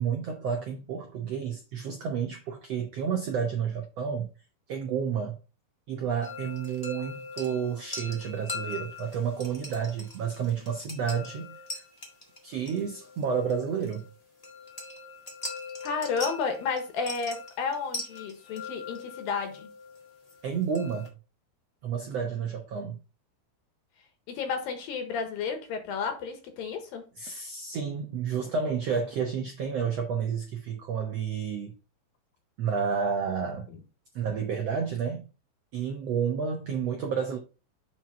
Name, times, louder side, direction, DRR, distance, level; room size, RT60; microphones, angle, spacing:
voice 1, 0.0-4.3 4.7-5.4 5.9-11.8 12.4-14.1 20.4-21.1 21.8-23.0 27.2-31.7 32.6-33.6 34.1-35.3 35.7-37.4, right 6 dB, 75° right, 1.5 m, -30 dB
sound 1, 6.2-21.1, left 3 dB, 35° left, 0.6 m, -42 dB
voice 2, 15.8-19.7 24.3-27.0, left 5 dB, 75° left, 3.0 m, -32 dB
7.5 x 4.5 x 4.3 m
omnidirectional pair, 4.3 m